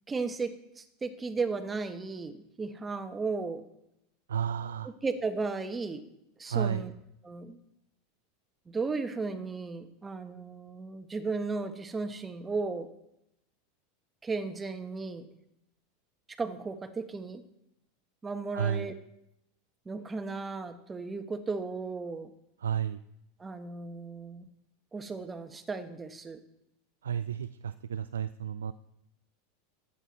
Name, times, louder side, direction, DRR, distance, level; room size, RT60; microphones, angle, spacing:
voice 1, 0.1-3.6 4.8-6.0 6.4-6.9 7.2-7.6 8.7-12.9 14.2-15.3 16.4-17.4 18.2-18.9 19.9-22.3 23.4-24.5 24.9-26.4, right 4 dB, 20° right, 10 dB, 1.2 m, -35 dB
voice 2, 4.3-4.9 6.5-6.9 18.5-18.9 22.6-23.0 27.0-28.7, right 8 dB, 80° right, 13 dB, 0.3 m, -32 dB
13.5 x 9.0 x 4.1 m, 0.83 s
hypercardioid pair, 90°, 0 cm